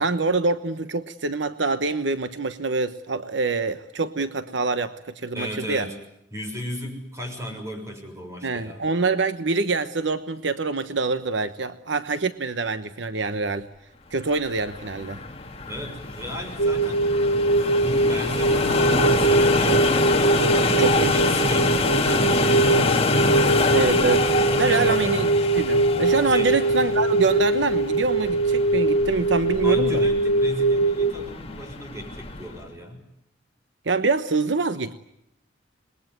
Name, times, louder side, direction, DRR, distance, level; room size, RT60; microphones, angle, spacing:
voice 1, 0.0-5.9 8.4-13.7 14.1-15.2 20.8-21.3 23.7-30.1 33.9-34.9, right 3 dB, 75° right, 11 dB, 1.1 m, -25 dB
voice 2, 5.3-6.0 6.3-8.8 15.7-17.2 17.8-19.8 20.5-22.8 24.7-25.0 26.3-26.5 29.6-33.0, equal, 15° right, 4 dB, 6.5 m, -34 dB
sound 1, 14.3-32.6, left 3 dB, 35° left, 1.9 m, -26 dB
sound 2, 16.6-31.1, right 2 dB, 85° left, 1.4 m, -22 dB
27.5 x 21.5 x 9.4 m, 0.79 s
head